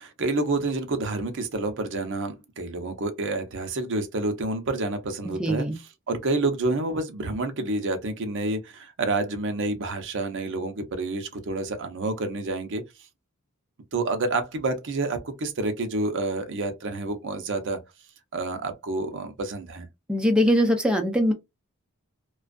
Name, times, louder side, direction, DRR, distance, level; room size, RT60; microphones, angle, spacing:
voice 1, 0.0-12.8 13.9-17.8 18.3-19.9, right 2 dB, 60° right, 0.6 m, -29 dB
voice 2, 5.2-5.7 20.1-21.3, equal, 5° right, 0.5 m, -22 dB
2.5 x 2.3 x 2.2 m
head